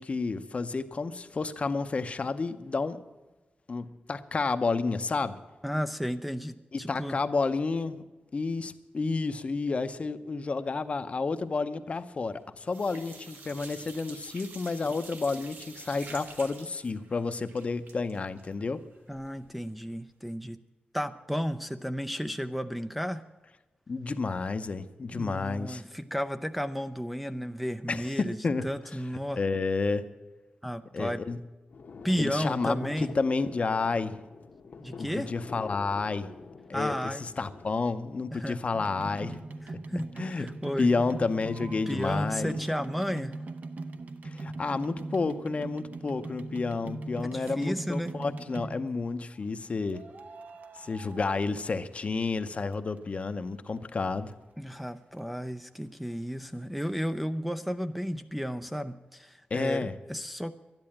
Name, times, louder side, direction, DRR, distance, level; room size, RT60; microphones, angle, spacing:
voice 1, 0.0-3.0 3.7-5.4 6.7-8.0 8.3-18.8 23.9-25.8 27.9-28.7 29.4-30.1 30.9-31.4 32.1-34.2 35.0-36.3 36.7-39.4 39.7-39.8 40.2-40.5 40.8-42.6 44.2-50.0 50.7-54.3 59.5-59.9, left 4 dB, 40° left, 10 dB, 0.7 m, -30 dB
voice 2, 5.6-7.2 19.1-20.6 20.9-23.2 25.1-29.4 30.6-31.2 32.0-33.2 34.8-35.3 36.7-37.2 38.3-38.6 39.6-40.9 41.9-43.5 47.2-48.2 54.6-60.5, equal, ahead, 7 dB, 0.4 m, -33 dB
sound 1, 12.0-12.4 12.7-19.5 19.9-20.0 20.3-20.4, right 3 dB, 85° right, 1.7 m, -48 dB
sound 2, 31.7-37.8, left 4 dB, 70° left, 1.1 m, -46 dB
sound 3, 38.7-49.1 49.9-52.0 52.3-53.2 53.8-53.9 54.0-54.1 54.3-54.4 54.9-55.0 55.2-55.3, right 2 dB, 55° right, 0.8 m, -40 dB
12.5 x 10.5 x 8.7 m, 1.1 s
wide cardioid pair, 135°, 3 cm